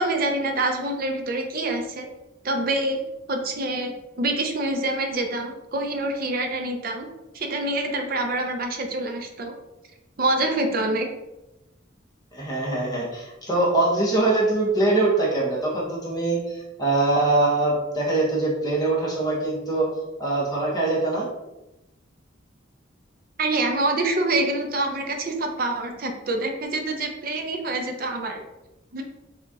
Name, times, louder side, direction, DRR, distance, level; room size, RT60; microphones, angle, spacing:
voice 1, 0.0-2.1 2.4-3.0 3.3-7.1 7.3-9.5 10.2-11.1 23.4-28.4 28.9-29.0, right 2 dB, 50° right, 4 dB, 0.6 m, -26 dB
voice 2, 12.3-19.9 20.2-21.2, right 2 dB, 20° left, -4 dB, 1.1 m, -23 dB
6.7 x 2.4 x 2.8 m, 0.98 s
head